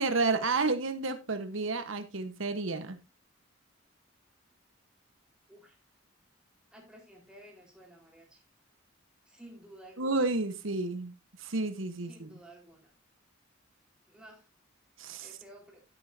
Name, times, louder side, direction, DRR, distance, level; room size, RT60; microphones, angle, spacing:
voice 1, 0.0-3.0 10.0-12.3 15.0-15.3, right 3 dB, 85° right, 9 dB, 1.2 m, -31 dB
voice 2, 6.7-8.4 9.3-10.2 12.0-12.9 14.1-14.5 15.2-15.8, right 1 dB, 5° right, -1 dB, 4.3 m, -53 dB
11.5 x 11.0 x 2.7 m, 0.25 s
head